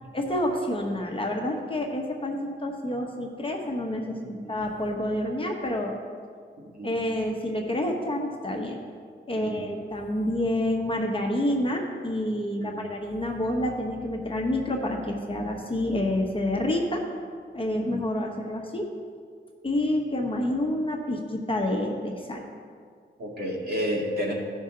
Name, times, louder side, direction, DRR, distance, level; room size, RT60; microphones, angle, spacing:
voice 1, 0.1-6.0 6.8-8.8 9.3-17.0 17.5-18.9 19.6-22.4, left 1 dB, 25° left, 1 dB, 1.0 m, -28 dB
voice 2, 9.4-9.7 12.5-12.8 17.8-17.9 23.2-24.3, equal, 50° right, -4 dB, 2.2 m, -31 dB
15.5 x 5.5 x 3.8 m, 2.1 s
wide cardioid pair, 125°, 20 cm